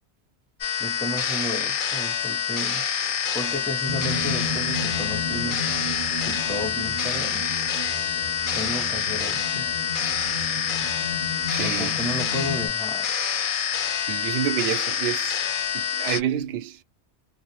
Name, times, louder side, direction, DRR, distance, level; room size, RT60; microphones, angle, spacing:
sound 1, 0.6-16.2, left 8 dB, 55° left, 0.6 m, -27 dB
voice 1, 0.8-2.9 3.3-5.8 6.2-7.5 8.5-9.7 11.6-13.1, equal, 5° left, 0.5 m, -33 dB
sound 2, 3.9-12.7, left 2 dB, 30° right, 0.8 m, -34 dB
voice 2, 11.5-12.0 14.0-15.4 15.7-16.8, right 10 dB, 70° right, 0.8 m, -28 dB
2.1 x 2.0 x 2.9 m
omnidirectional pair, 1.2 m